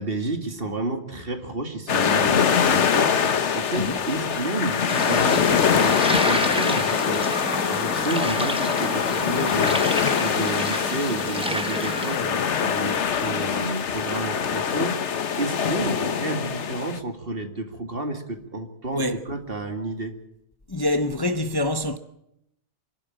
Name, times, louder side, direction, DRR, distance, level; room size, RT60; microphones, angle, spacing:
voice 1, 0.0-7.3 7.7-15.0 15.3-20.1, right 2 dB, 50° right, 2.5 m, -31 dB
sound 1, 1.9-17.0, left 7 dB, 75° left, 1.3 m, -23 dB
sound 2, 4.9-12.2, equal, 5° right, 1.3 m, -30 dB
voice 2, 20.7-22.0, left 1 dB, 25° left, 0.8 m, -25 dB
26.5 x 12.0 x 8.8 m
omnidirectional pair, 1.2 m